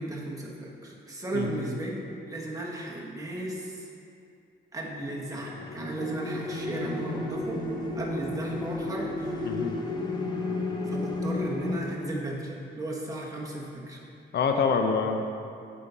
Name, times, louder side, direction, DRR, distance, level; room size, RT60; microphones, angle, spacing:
voice 1, 0.0-1.9 2.3-3.9 4.7-7.7 7.9-9.5 10.9-14.0, right 2 dB, 15° right, -3 dB, 1.4 m, -35 dB
voice 2, 1.3-1.7 9.4-9.8 14.3-15.3, left 5 dB, 60° left, 4 dB, 0.6 m, -26 dB
sound 1, 4.9-11.8, left 2 dB, 20° left, 0.9 m, -33 dB
7.5 x 5.6 x 4.0 m, 2.5 s
cardioid pair, 90°, 20 cm